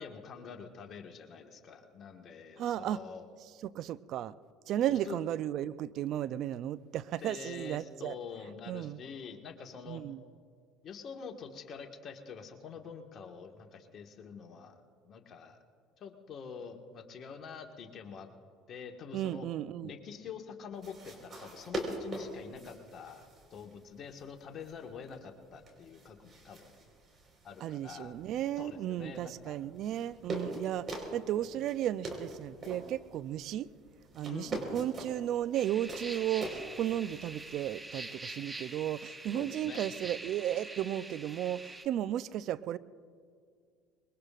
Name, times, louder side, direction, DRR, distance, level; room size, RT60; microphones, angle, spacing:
voice 1, 0.0-3.2 4.9-5.2 7.2-10.0 10.8-15.6 16.0-18.3 18.7-19.5 19.8-23.3 23.5-26.7 27.4-28.2 28.6-29.6 30.5-30.6 34.3-34.8 39.3-39.8, left 6 dB, 45° left, 1.6 m, -46 dB
voice 2, 2.6-3.0 3.6-4.3 4.7-8.2 8.7-9.0 9.9-10.2 19.1-19.9 27.6-33.7 34.1-42.8, right 12 dB, 60° right, 0.5 m, -34 dB
sound 1, 20.7-37.8, right 2 dB, 35° right, 4.5 m, -44 dB
Insects and frogs at night, 35.5-41.9, right 2 dB, 15° right, 1.0 m, -45 dB
24.0 x 22.0 x 2.5 m
hypercardioid pair, 75°, 0 cm